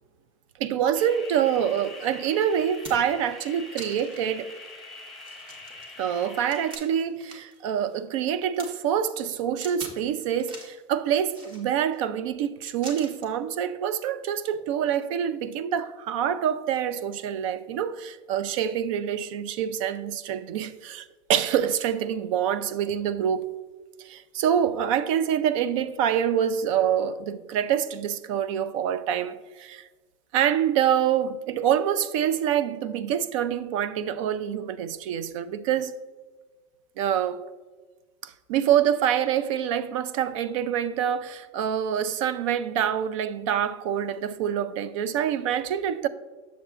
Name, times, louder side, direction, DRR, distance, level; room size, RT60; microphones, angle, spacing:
voice 1, 0.6-4.5 6.0-23.5 24.0-29.9 30.3-35.9 37.0-37.4 38.2-46.1, right 9 dB, 80° right, 0.5 m, -26 dB
sound 1, 0.9-6.8, left 2 dB, ahead, 1.0 m, -44 dB
sound 2, 2.0-2.1 2.5-3.2 3.8-4.2 4.7-4.8 5.2-7.6 7.9-8.7 9.6-10.0 10.4-10.8 11.3-12.0 12.8-13.4 14.4-14.6, right 1 dB, 30° right, 1.2 m, -43 dB
7.3 x 7.0 x 2.4 m
supercardioid pair, 155°, 16 cm